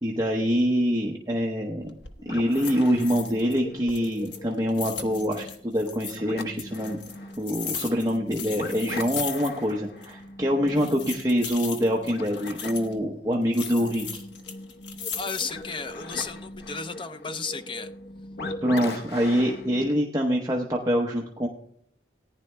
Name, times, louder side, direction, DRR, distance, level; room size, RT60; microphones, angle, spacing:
voice 1, 0.0-1.9 2.3-7.0 7.4-14.2 18.6-21.5, equal, 20° right, 0 dB, 0.8 m, -25 dB
sound 1, 1.8-2.2 2.5-3.6 3.9-6.2 6.6-9.8 10.0-10.1 10.7-12.9 13.5-15.7 16.2-16.7, left 7 dB, 85° left, 1.1 m, -37 dB
sound 2, 2.2-19.9, left 2 dB, 65° left, 0.9 m, -40 dB
voice 2, 15.2-17.9, left 4 dB, 30° left, 8 dB, 0.6 m, -34 dB
18.5 x 10.5 x 2.2 m, 0.64 s
head